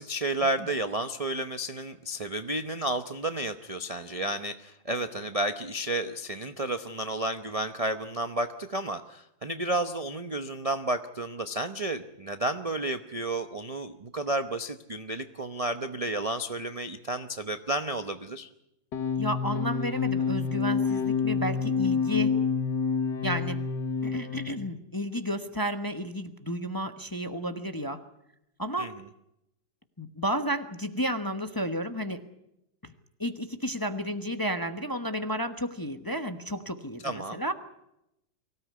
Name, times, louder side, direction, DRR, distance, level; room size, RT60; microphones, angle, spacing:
voice 1, 0.0-18.5 28.8-28.9 37.0-37.4, right 1 dB, 35° right, 9 dB, 0.6 m, -31 dB
sound 1, 18.9-24.6, left 5 dB, 70° left, 2.2 m, -28 dB
voice 2, 19.2-22.4 23.2-23.6 24.0-28.0 28.6-28.9 30.0-32.2 32.8-32.9 33.2-37.5, equal, 15° left, 8 dB, 0.9 m, -32 dB
24.0 x 17.0 x 9.5 m, 0.84 s
omnidirectional pair, 2.0 m